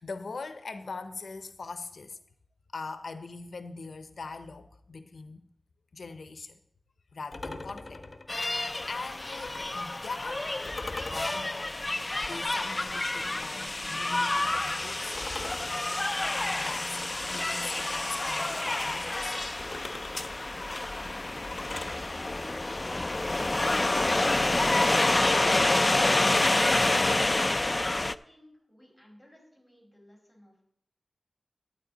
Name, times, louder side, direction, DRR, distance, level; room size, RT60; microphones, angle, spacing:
voice 1, 0.0-2.2 2.7-5.4 5.9-6.6 7.1-8.0 8.3-10.5 11.1-11.8 12.3-15.3 16.4-19.4, left 4 dB, 85° left, 0.6 m, -41 dB
sound 1, 7.3-9.9 10.6-13.6 15.1-17.6 19.6-22.0, left 2 dB, 50° left, 0.8 m, -43 dB
sound 2, 8.3-28.1, left 2 dB, 30° left, 0.3 m, -28 dB
voice 2, 25.7-30.6, equal, ahead, 5.0 m, -54 dB
12.0 x 9.5 x 3.9 m
wide cardioid pair, 85°, 0 cm